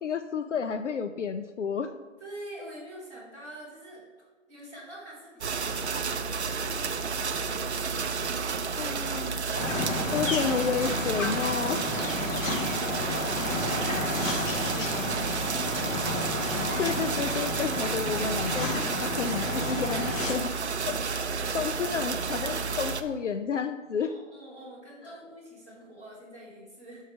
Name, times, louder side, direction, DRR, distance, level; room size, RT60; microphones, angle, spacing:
voice 1, 0.0-1.9 8.8-9.4 10.1-11.9 16.8-20.5 20.9-21.0 21.5-24.2, left 6 dB, 70° left, 9 dB, 0.5 m, -31 dB
voice 2, 2.2-4.0 4.5-9.1 11.9-16.1 20.6-21.6 24.0-27.0, right 1 dB, 10° left, -12 dB, 2.6 m, -46 dB
sound 1, 5.4-23.0, right 5 dB, 60° right, 0.6 m, -31 dB
sound 2, 9.5-20.3, left 2 dB, 85° left, 1.9 m, -32 dB
6.4 x 6.1 x 5.1 m, 1.4 s
hypercardioid pair, 180°, 38 cm